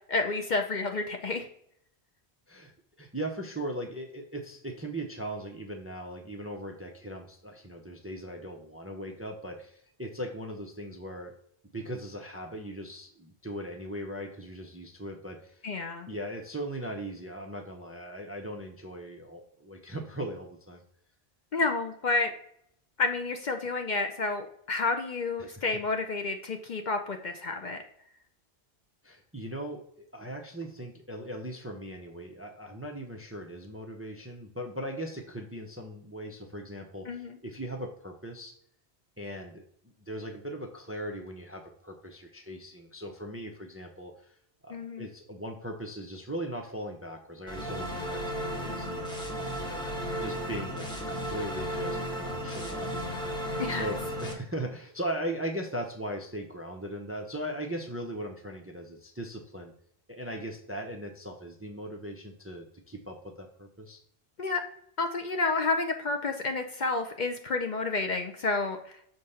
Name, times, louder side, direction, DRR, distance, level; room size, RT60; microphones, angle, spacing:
voice 1, 0.1-1.5 15.6-16.1 21.5-22.3 23.0-27.8 37.1-37.4 44.7-45.1 53.6-53.8 64.4-64.6 65.0-68.8, left 3 dB, 50° left, 5 dB, 0.7 m, -30 dB
voice 2, 3.0-11.3 11.7-15.7 16.1-20.8 25.4-25.6 29.0-38.5 39.2-39.6 40.1-44.3 44.6-49.2 49.6-49.8 50.2-52.9 53.8-59.7 60.1-64.0, right 1 dB, 15° right, 3 dB, 0.5 m, -39 dB
sound 1, 47.5-54.3, equal, 5° left, 1.2 m, -34 dB
6.7 x 3.3 x 5.4 m, 0.68 s
omnidirectional pair, 1.1 m